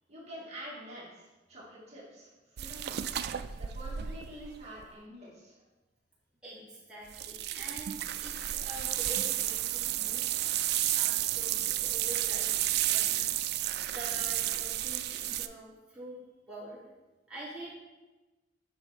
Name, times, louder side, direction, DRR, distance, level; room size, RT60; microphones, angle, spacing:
voice 1, 0.1-3.0 3.5-5.5, equal, 35° right, -7 dB, 2.3 m, -47 dB
sound 1, 2.6-4.8 7.1-15.5, right 13 dB, 60° right, 0.4 m, -32 dB
voice 2, 6.4-10.3 10.9-12.5 12.9-13.4 13.9-16.1 16.5-16.8 17.3-17.7, right 1 dB, 5° right, -9 dB, 2.7 m, -45 dB
8.0 x 5.7 x 4.2 m, 1.1 s
head